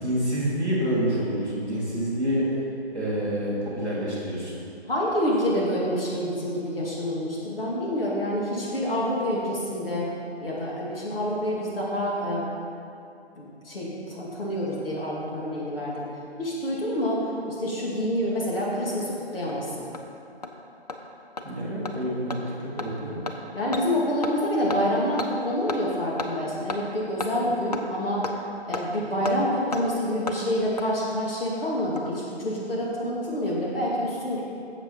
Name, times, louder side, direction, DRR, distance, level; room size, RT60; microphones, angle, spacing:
voice 1, 0.0-2.5 2.9-4.5 21.4-22.4 22.8-23.2, equal, 5° left, -11 dB, 1.1 m, -27 dB
voice 2, 4.9-10.1 10.4-12.4 13.4-16.1 16.4-19.9 23.5-28.3 28.7-34.4, equal, 55° left, -5 dB, 2.3 m, -27 dB
Hammer, 19.0-19.1 19.5-19.6 19.9-20.0 20.4-20.5 20.9-21.0 21.4-21.5 21.9-22.0 22.3-22.4 22.8-22.9 23.3-23.4 23.7-23.8 24.2-24.4 24.7-24.8 25.2-25.3 25.7-25.8 26.2-26.3 26.7-26.8 27.2-27.3 27.7-27.8 28.2-28.4 28.7-28.8 29.3-29.4 29.7-29.8 30.3-30.4 30.8-30.9 31.8-32.2 32.4-32.5, left 3 dB, 40° left, 0.6 m, -32 dB
8.0 x 7.5 x 5.5 m, 2.6 s
figure-of-eight pair, 160°, 33 cm